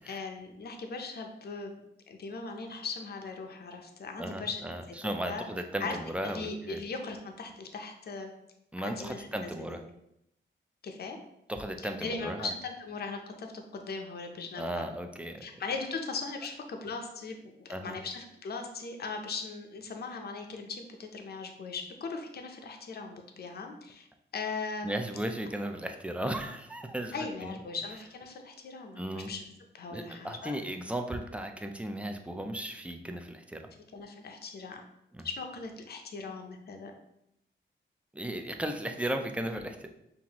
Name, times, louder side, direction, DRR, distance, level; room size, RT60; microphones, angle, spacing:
voice 1, 0.0-1.7 2.1-4.6 4.9-5.0 5.3-5.5 5.8-6.0 6.2-8.3 8.8-9.8 10.8-11.2 12.0-14.8 15.4-24.1 24.3-25.1 27.1-29.4 29.7-30.6 33.9-34.8 35.2-36.9, left 4 dB, 55° left, 4 dB, 0.6 m, -39 dB
voice 2, 4.2-6.8 8.7-9.8 11.5-12.5 14.6-15.5 17.7-18.0 24.8-27.6 29.0-29.3 29.9-33.7 35.1-35.2 38.1-39.9, right 1 dB, 5° right, 5 dB, 0.3 m, -36 dB
5.5 x 2.5 x 2.9 m, 0.81 s
wide cardioid pair, 125°, 20 cm